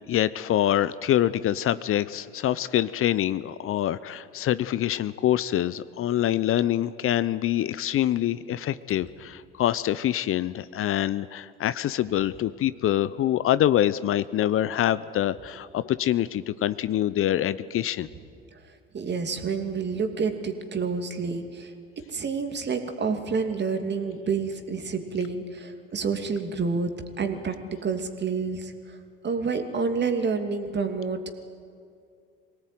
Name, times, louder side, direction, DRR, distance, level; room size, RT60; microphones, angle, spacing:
voice 1, 0.1-18.1, left 12 dB, 50° left, 16 dB, 0.8 m, -25 dB
voice 2, 18.9-21.7 22.1-27.6 27.8-29.0 29.2-31.2, right 5 dB, 35° right, 6 dB, 2.7 m, -28 dB
23.0 x 18.0 x 9.4 m, 2.3 s
hypercardioid pair, 65°, 29 cm